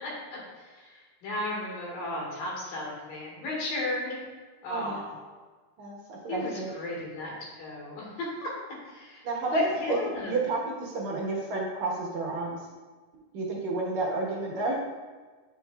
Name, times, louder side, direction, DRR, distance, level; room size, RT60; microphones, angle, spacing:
voice 1, 0.0-4.2 4.6-5.1 6.3-8.5 8.9-10.3, left 1 dB, 90° left, -4 dB, 3.3 m, -35 dB
voice 2, 4.7-5.0 5.8-6.7 9.2-10.0 10.3-12.6 13.3-14.8, right 2 dB, 65° right, -3 dB, 2.3 m, -30 dB
8.5 x 5.7 x 2.3 m, 1.4 s
omnidirectional pair, 3.8 m